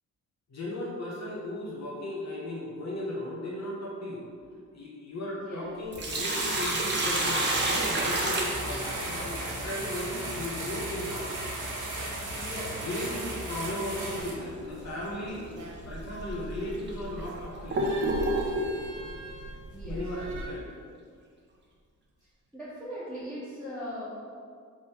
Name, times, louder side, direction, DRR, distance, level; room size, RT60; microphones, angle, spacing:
voice 1, 0.5-4.3 4.5-11.3 12.8-15.4 15.8-17.9 19.8-20.7, left 1 dB, 60° left, -4 dB, 1.2 m, -36 dB
voice 2, 5.3-5.7 12.3-12.9 19.7-20.1 22.5-24.2, equal, ahead, -13 dB, 1.5 m, -39 dB
Sink (filling or washing), 5.7-9.3 11.7-11.8 13.7-13.9 14.4-14.5 15.3-15.4 16.1-16.2 16.9-18.8, right 1 dB, 35° right, 0.8 m, -29 dB
sound 1, 5.9-14.3, right 1 dB, 90° right, 1.5 m, -36 dB
sound 2, 14.1-20.5, right 1 dB, 75° right, 1.0 m, -41 dB
5.2 x 3.6 x 5.5 m, 2.1 s
wide cardioid pair, 165°, 31 cm